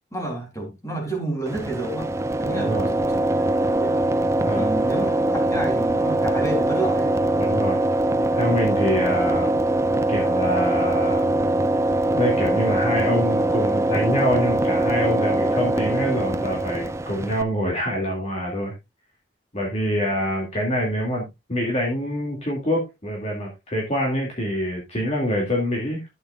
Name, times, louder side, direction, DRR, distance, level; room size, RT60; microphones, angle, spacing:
voice 1, 0.1-2.1 2.4-3.9 4.5-7.1, right 2 dB, 15° left, 3.6 m, -30 dB
sound 1, 1.5-17.4, right 1 dB, 15° right, 0.5 m, -22 dB
voice 2, 2.5-2.9 4.4-4.7 7.4-7.8 8.3-9.5 10.1-11.3 12.1-18.7 19.5-26.0, equal, 35° left, 2.4 m, -25 dB
12.5 x 8.5 x 2.4 m
head